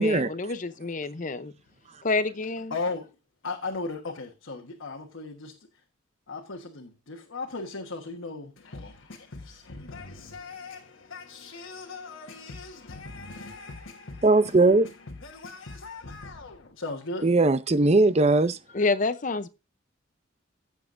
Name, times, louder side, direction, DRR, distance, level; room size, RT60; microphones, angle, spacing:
voice 1, 0.0-1.5 2.0-2.7 18.7-19.5, left 3 dB, 40° left, 0.6 m, -28 dB
voice 2, 2.7-3.1 3.4-5.6 6.3-17.3, left 3 dB, 80° left, 1.3 m, -38 dB
voice 3, 14.2-14.9 17.2-18.6, right 2 dB, 35° right, 0.5 m, -19 dB
15.5 x 7.2 x 2.6 m
head